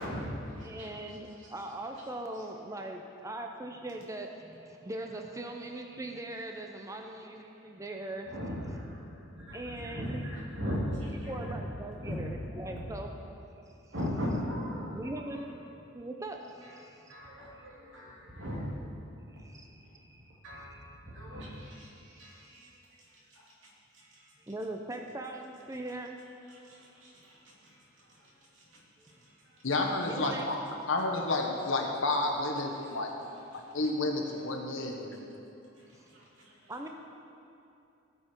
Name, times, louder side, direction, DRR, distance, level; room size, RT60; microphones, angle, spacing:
voice 1, 0.0-2.1 2.3-2.5 2.8-2.9 7.5-7.7 8.2-11.6 11.9-12.8 13.9-15.5 16.6-18.8 19.1-20.0 20.4-24.5 26.5-29.6 32.7-33.8 35.7-36.8, equal, 75° right, -4 dB, 2.7 m, -40 dB
voice 2, 0.6-8.3 9.5-10.3 11.3-13.1 13.8-13.9 14.9-15.6 15.9-17.1 19.3-20.4 20.7-20.8 24.5-26.2 29.0-29.1 30.1-30.5 35.9-36.1 36.7-36.9, right 1 dB, 15° right, 3 dB, 0.6 m, -41 dB
voice 3, 29.6-30.6 30.9-33.2 33.7-35.2, left 2 dB, 80° left, 2 dB, 1.4 m, -30 dB
16.5 x 6.7 x 4.5 m, 2.7 s
head